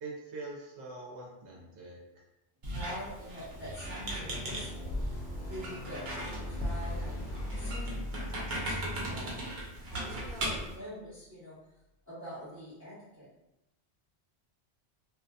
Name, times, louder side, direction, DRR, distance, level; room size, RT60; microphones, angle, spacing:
voice 1, 0.0-2.0 5.3-5.5, right 3 dB, 90° right, -3 dB, 1.0 m, -44 dB
Squeak, 2.6-10.7, right 1 dB, 70° right, 0.9 m, -38 dB
voice 2, 2.7-5.0 5.4-9.3 9.9-11.6 12.1-13.3, equal, 15° right, -10 dB, 0.8 m, -45 dB
sound 1, 3.7-10.4, left 1 dB, 75° left, 0.9 m, -41 dB
2.6 x 2.5 x 2.2 m, 0.89 s
omnidirectional pair, 1.1 m